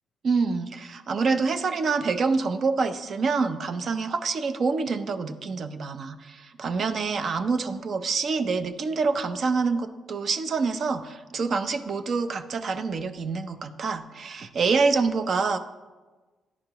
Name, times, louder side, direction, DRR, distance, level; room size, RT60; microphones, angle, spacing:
voice 1, 0.2-15.6, right 4 dB, 50° right, 10 dB, 0.5 m, -26 dB
10.5 x 4.5 x 2.9 m, 1.3 s
cardioid pair, 90°, 0 cm